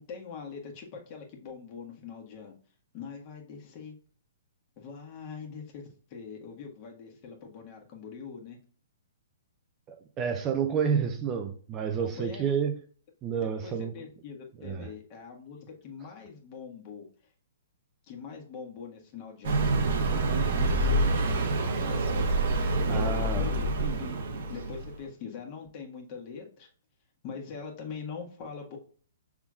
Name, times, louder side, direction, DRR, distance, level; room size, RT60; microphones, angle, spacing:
voice 1, 0.0-2.5 2.9-3.9 4.8-8.6 12.0-12.5 13.4-17.3 18.1-22.2 22.9-24.2 24.5-26.7 27.2-28.8, left 6 dB, 40° left, 1.5 m, -43 dB
voice 2, 9.9-12.8 13.2-13.9 14.6-14.9 22.9-23.5, right 7 dB, 25° right, 0.6 m, -29 dB
Car passing by, 19.4-25.0, right 2 dB, 55° right, 1.0 m, -27 dB
5.9 x 3.6 x 2.4 m
figure-of-eight pair, 125°, 0 cm